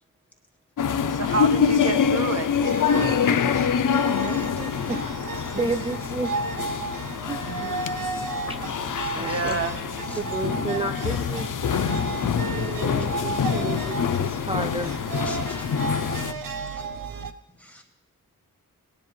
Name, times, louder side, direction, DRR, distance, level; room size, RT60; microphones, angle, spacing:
sound 1, 0.8-16.3, left 7 dB, 65° left, 0.5 m, -25 dB
voice 1, 1.1-2.7 5.5-5.7 7.5-7.9 9.1-9.8, right 4 dB, 45° right, 6 dB, 1.1 m, -29 dB
sound 2, 2.6-17.3, right 5 dB, 75° right, 0.7 m, -34 dB
voice 2, 4.2-6.3 7.3-7.4 8.5-9.6 10.2-11.5 12.5-15.2, right 2 dB, 15° right, 7 dB, 0.4 m, -32 dB
voice 3, 15.3-15.6 15.9-16.1 16.6-16.8 17.6-17.8, left 1 dB, 5° left, 1 dB, 1.3 m, -44 dB
18.5 x 10.0 x 3.1 m, 0.79 s
wide cardioid pair, 125°, 34 cm